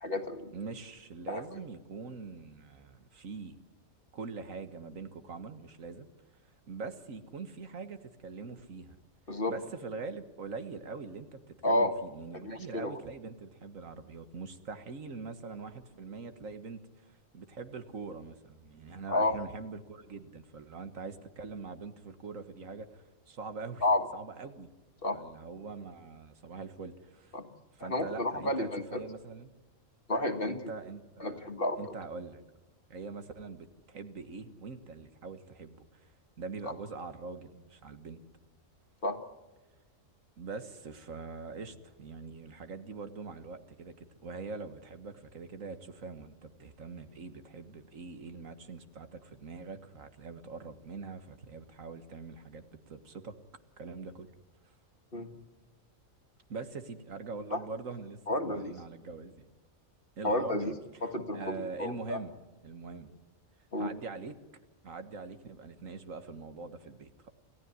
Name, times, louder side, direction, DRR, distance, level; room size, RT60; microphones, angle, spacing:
voice 1, 0.0-0.5 1.3-1.4 9.3-9.5 11.6-11.9 12.4-13.0 19.1-19.3 23.8-24.0 25.0-25.2 27.3-27.5 27.8-29.0 30.1-30.6 31.2-31.8 36.6-36.7 39.0-39.2 55.1-55.3 57.5-57.6 58.3-58.7 60.2-60.7 61.0-62.2 63.7-63.9, left 1 dB, 45° left, 7 dB, 1.9 m, -30 dB
voice 2, 0.5-3.6 4.1-6.1 6.7-9.0 9.3-23.8 24.1-24.7 25.1-27.4 27.7-29.6 30.5-31.5 31.8-32.4 32.9-36.1 36.4-38.2 40.4-53.4 53.8-54.3 54.6-54.7 56.5-59.5 60.2-62.4 62.6-63.1 63.8-64.4 64.8-67.3, right 4 dB, 75° right, 9 dB, 1.9 m, -43 dB
28.5 x 15.5 x 9.5 m, 1.2 s
omnidirectional pair, 1.4 m